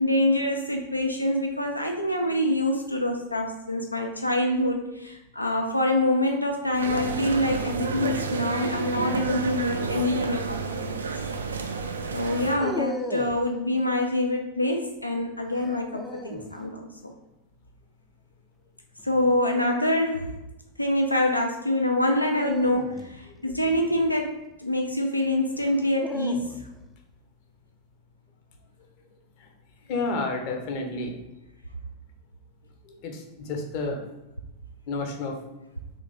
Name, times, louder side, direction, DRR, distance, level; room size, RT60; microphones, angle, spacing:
voice 1, 0.0-11.1 12.1-17.1 19.0-20.3 20.8-26.5, left 1 dB, 85° left, 3 dB, 0.3 m, -25 dB
sound 1, 6.7-12.6, right 4 dB, 70° right, 0.3 m, -30 dB
sound 2, 12.2-13.5 15.6-16.5 19.0-19.4 22.2-24.5 25.6-26.9, left 1 dB, 5° left, 0.4 m, -37 dB
voice 2, 29.9-31.1 33.0-33.2 33.5-34.0 34.9-35.4, left 3 dB, 45° left, 3 dB, 0.7 m, -29 dB
3.2 x 3.0 x 4.0 m, 0.96 s
figure-of-eight pair, 90°, 0 cm